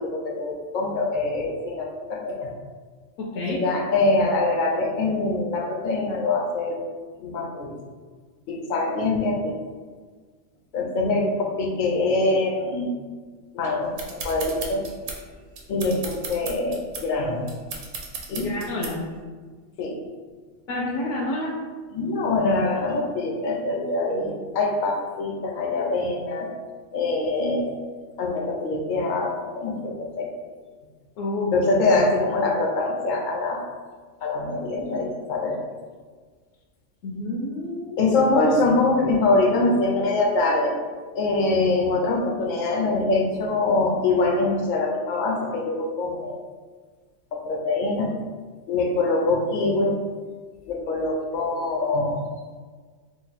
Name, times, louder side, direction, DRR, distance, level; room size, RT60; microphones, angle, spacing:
voice 1, 0.0-2.5 3.4-6.8 7.2-7.7 8.5-9.5 10.7-12.9 13.5-14.8 15.7-17.4 18.3-18.5 19.8-19.9 21.9-26.5 26.9-27.7 28.2-30.3 31.5-33.7 34.2-35.6 38.0-40.7 41.2-46.4 47.3-48.1 48.7-50.0 50.7-52.2, left 2 dB, 55° left, 0 dB, 0.6 m, -24 dB
voice 2, 3.2-3.6 18.4-19.0 20.7-21.5 31.2-31.6 37.0-38.2, left 2 dB, 75° left, -4 dB, 0.9 m, -29 dB
sound 1, 14.0-19.2, right 4 dB, 90° right, 1.0 m, -36 dB
2.9 x 2.3 x 4.1 m, 1.5 s
omnidirectional pair, 1.3 m